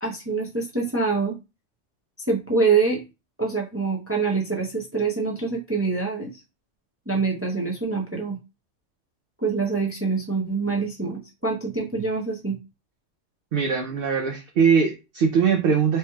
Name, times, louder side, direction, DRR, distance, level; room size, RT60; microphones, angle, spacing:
voice 1, 0.0-1.4 2.3-3.0 3.4-6.4 7.1-8.4 9.4-12.6, right 4 dB, 15° right, 0 dB, 0.5 m, -25 dB
voice 2, 13.5-16.0, right 6 dB, 60° right, 4 dB, 0.7 m, -21 dB
4.4 x 3.0 x 2.3 m, 0.27 s
omnidirectional pair, 1.3 m